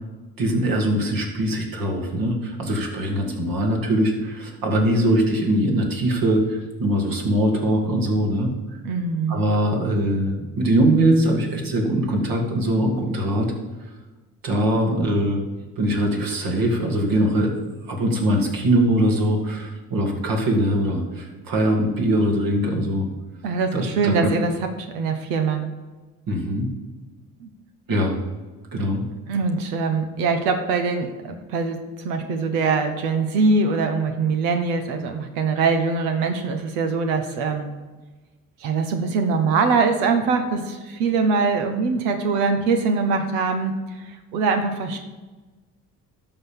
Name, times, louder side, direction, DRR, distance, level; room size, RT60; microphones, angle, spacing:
voice 1, 0.4-8.8 9.3-13.5 14.4-15.4 15.8-17.5 17.9-23.1 23.7-24.3 26.3-26.7 27.9-28.2 28.7-29.0, right 1 dB, 60° right, 1 dB, 2.5 m, -22 dB
voice 2, 8.8-9.3 23.4-24.5 24.8-25.7 27.4-27.5 29.3-37.7 38.6-45.0, right 4 dB, 90° right, 6 dB, 1.1 m, -23 dB
12.0 x 4.0 x 7.1 m, 1.2 s
supercardioid pair, 60°, 39 cm